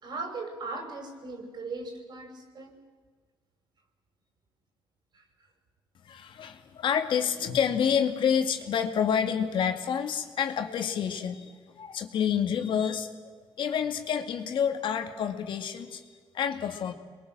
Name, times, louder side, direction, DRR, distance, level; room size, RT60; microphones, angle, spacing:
voice 1, 0.0-2.8 5.1-5.3, right 3 dB, 55° right, 4 dB, 6.1 m, -38 dB
voice 2, 6.0-13.1 13.6-16.1 16.3-16.9, left 8 dB, 75° left, 6 dB, 2.3 m, -28 dB
26.5 x 22.0 x 7.6 m, 1.5 s
cardioid pair, 90°, 9 cm